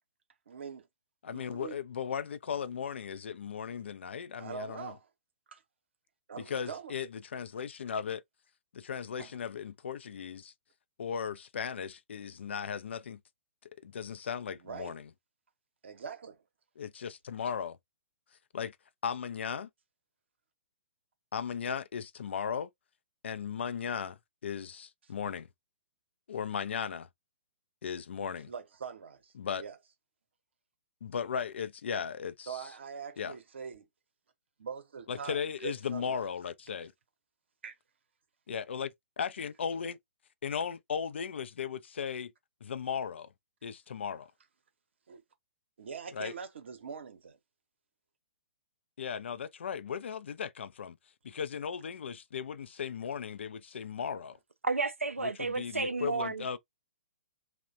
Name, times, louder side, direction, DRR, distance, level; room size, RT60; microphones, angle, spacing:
voice 1, 0.5-0.9 1.3-1.8 4.4-5.1 5.5-5.6 6.3-6.9 9.2-9.3 14.6-15.0 15.8-16.4 28.2-29.8 32.5-33.9 34.6-36.2 37.6-37.8 45.1-45.2 45.8-47.4, right 6 dB, 60° right, 0.7 m, -43 dB
voice 2, 1.2-4.9 6.5-8.2 8.7-10.5 11.0-13.2 13.8-15.1 16.8-17.8 18.5-18.8 19.0-19.7 21.3-22.7 23.2-25.5 26.3-27.1 27.8-28.5 29.4-29.6 31.0-32.6 33.2-33.4 35.1-36.9 38.5-38.9 39.2-40.0 40.4-42.3 42.6-43.3 43.6-44.3 46.1-46.3 49.0-51.0 51.2-54.4 55.2-56.6, left 7 dB, 60° left, 0.4 m, -36 dB
voice 3, 54.6-56.6, right 3 dB, 85° right, 0.4 m, -32 dB
3.0 x 2.1 x 2.4 m
figure-of-eight pair, 120°, 7 cm